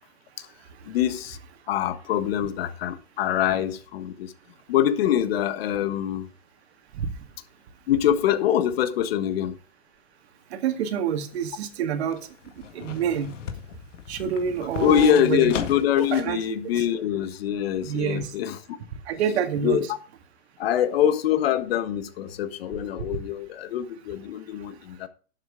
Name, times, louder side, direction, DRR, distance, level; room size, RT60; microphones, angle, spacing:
voice 1, 0.9-1.4 1.7-4.3 4.7-6.3 7.9-9.5 14.8-18.6 19.6-19.9 20.6-25.1, left 10 dB, 50° left, 1.4 m, -24 dB
voice 2, 10.5-12.2 12.6-13.3 14.1-15.5 16.1-16.4 16.8-16.9 17.8-18.3 19.1-19.9, right 8 dB, 55° right, 2.1 m, -27 dB
sound 1, 11.3-16.4 16.7-16.8, left 7 dB, 70° left, 2.1 m, -36 dB
11.5 x 7.8 x 3.7 m
hypercardioid pair, 155°, 38 cm